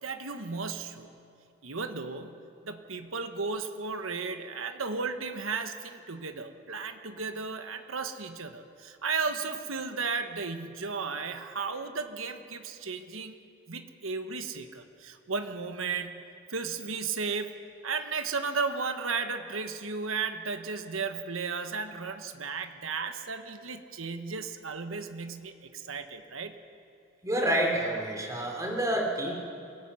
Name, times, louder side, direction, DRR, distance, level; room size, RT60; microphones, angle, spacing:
voice 1, 0.0-1.1 1.6-2.4 2.6-13.4 13.7-16.2 16.5-17.5 17.8-26.5, right 4 dB, 80° right, 7 dB, 1.3 m, -34 dB
voice 2, 27.2-29.3, right 1 dB, 15° right, -1 dB, 3.6 m, -28 dB
27.0 x 18.0 x 5.7 m, 2.5 s
head